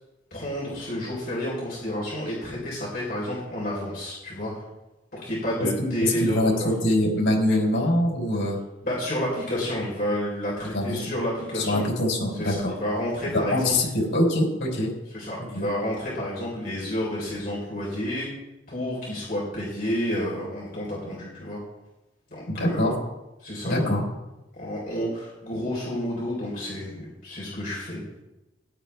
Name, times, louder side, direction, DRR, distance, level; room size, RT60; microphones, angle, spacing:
voice 1, 0.3-4.6 5.1-6.7 8.8-11.8 12.3-13.7 15.1-18.3 18.7-21.6 22.3-22.9 23.4-23.9 24.5-28.0, equal, 45° left, -5 dB, 4.1 m, -30 dB
voice 2, 5.6-8.6 10.7-11.0 11.5-12.7 13.5-14.9 15.5-15.7 22.5-22.9 23.6-24.1, left 1 dB, 85° left, -1 dB, 4.4 m, -24 dB
16.5 x 11.0 x 3.5 m, 1.0 s
head